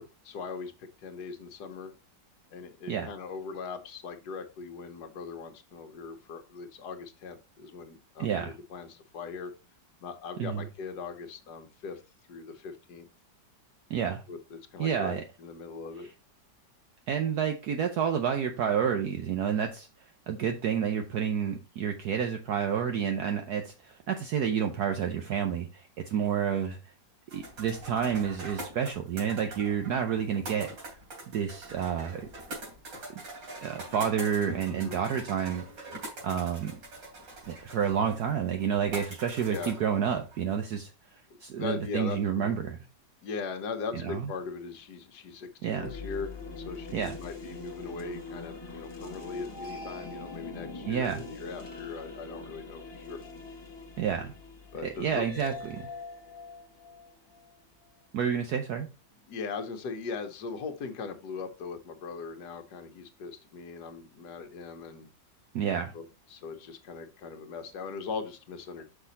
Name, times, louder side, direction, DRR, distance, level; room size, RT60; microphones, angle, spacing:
voice 1, 0.0-1.9 2.5-9.5 10.0-12.0 12.3-13.1 14.3-16.1 34.7-35.0 39.5-39.7 41.5-42.5 43.2-53.2 54.7-55.2 59.3-65.1 65.9-68.8, left 5 dB, 65° left, 6 dB, 1.5 m, -40 dB
voice 2, 8.2-8.5 10.4-10.7 13.9-14.2 14.8-15.2 17.1-19.9 20.3-26.8 27.3-30.7 31.3-32.3 33.6-35.6 36.2-36.8 37.5-42.8 44.0-44.3 45.6-45.9 46.9-47.2 50.9-51.2 54.0-54.3 55.0-55.8 58.1-58.9 65.5-65.9, right 8 dB, 65° right, 5 dB, 1.2 m, -29 dB
sound 1, 27.3-40.5, right 2 dB, 85° right, 4.0 m, -44 dB
sound 2, 45.7-57.9, left 3 dB, 15° left, 1.0 m, -43 dB
5.9 x 5.8 x 4.0 m, 0.30 s
omnidirectional pair, 2.0 m